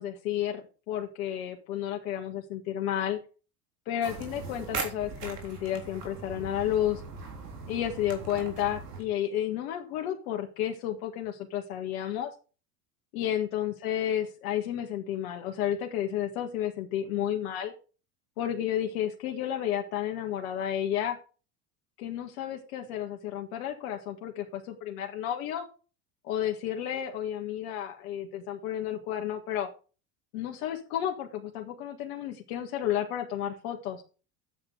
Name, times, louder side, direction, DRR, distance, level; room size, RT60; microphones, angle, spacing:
voice 1, 0.0-3.2 3.9-7.0 7.7-12.3 13.1-17.7 18.4-21.2 22.0-25.7 26.2-29.7 30.3-34.0, left 10 dB, 70° left, 2 dB, 1.9 m, -32 dB
sound 1, 4.0-9.0, right 4 dB, 90° right, 3.6 m, -39 dB
10.5 x 8.0 x 5.1 m, 0.36 s
hypercardioid pair, 90°, 46 cm